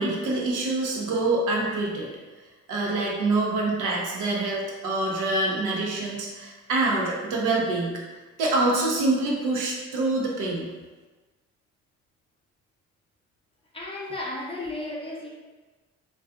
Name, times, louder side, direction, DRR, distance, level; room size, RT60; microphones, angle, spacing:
voice 1, 0.0-2.1 2.7-8.0 8.4-10.7, right 2 dB, 85° right, -3 dB, 0.7 m, -25 dB
voice 2, 13.7-15.3, left 2 dB, 20° left, -4 dB, 0.6 m, -34 dB
2.5 x 2.3 x 2.3 m, 1.3 s
cardioid pair, 90°, 30 cm